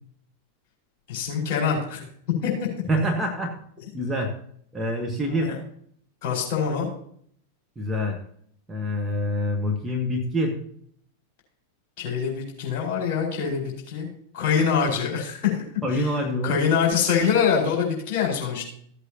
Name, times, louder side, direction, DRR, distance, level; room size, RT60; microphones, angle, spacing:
voice 1, 1.1-2.0 2.4-2.5 5.3-5.6 6.2-6.9 12.0-14.1 14.3-15.6 15.9-16.1 16.4-18.6, left 6 dB, 40° left, -1 dB, 4.6 m, -24 dB
voice 2, 2.9-3.5 3.9-4.3 4.7-5.5 7.8-8.2 8.7-10.6 15.8-16.6, equal, 10° right, 0 dB, 1.4 m, -26 dB
15.0 x 8.1 x 2.9 m, 0.64 s
figure-of-eight pair, 90°, 0 cm